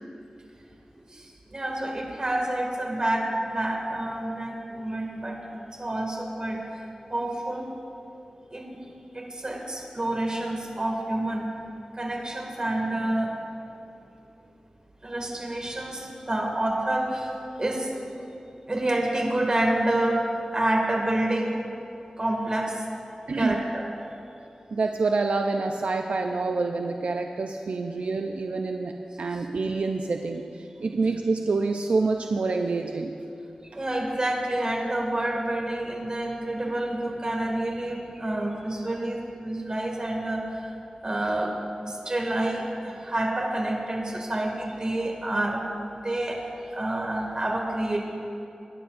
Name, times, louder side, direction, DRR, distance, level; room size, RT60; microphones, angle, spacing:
voice 1, 1.0-5.4 5.7-6.6 7.1-7.7 8.5-8.8 9.1-11.5 11.9-13.4 15.0-17.9 18.7-21.6 22.2-22.8 23.4-23.9 33.7-40.7 41.0-41.5 41.8-45.6 45.9-48.0, right 1 dB, 40° right, 0 dB, 2.1 m, -28 dB
voice 2, 24.7-33.1, right 3 dB, 75° right, 4 dB, 0.5 m, -27 dB
22.0 x 10.5 x 2.6 m, 2.8 s
wide cardioid pair, 65°, 2 cm